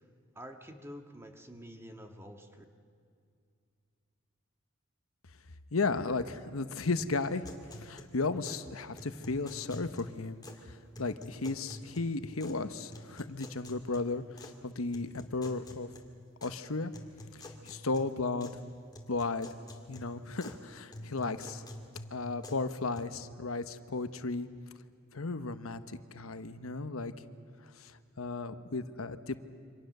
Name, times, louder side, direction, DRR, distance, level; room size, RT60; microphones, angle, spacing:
voice 1, 0.3-2.6, equal, 10° right, 4 dB, 1.7 m, -48 dB
voice 2, 5.7-7.5 7.8-15.9 16.4-16.9 17.6-18.6 19.1-19.5 19.9-21.6 22.1-24.5 25.1-27.1 27.8-29.4, left 3 dB, 85° left, 10 dB, 1.0 m, -35 dB
sound 1, 7.0-8.7 9.0-10.7 10.9-12.6 12.9-14.6 14.9-16.6 16.9-18.6 18.9-20.6 20.9-23.0, left 1 dB, 20° left, 2.6 m, -48 dB
28.0 x 25.5 x 6.7 m, 2.3 s
head